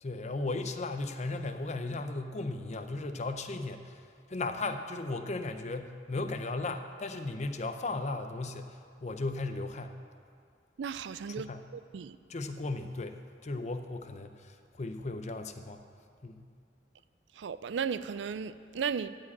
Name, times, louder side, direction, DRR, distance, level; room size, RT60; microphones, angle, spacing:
voice 1, 0.0-10.0 11.4-11.6 12.3-15.8 16.2-16.5, left 2 dB, 40° left, 0.6 m, -36 dB
voice 2, 10.8-12.2 17.4-19.1, right 6 dB, 80° right, 0.4 m, -35 dB
12.5 x 4.9 x 8.6 m
head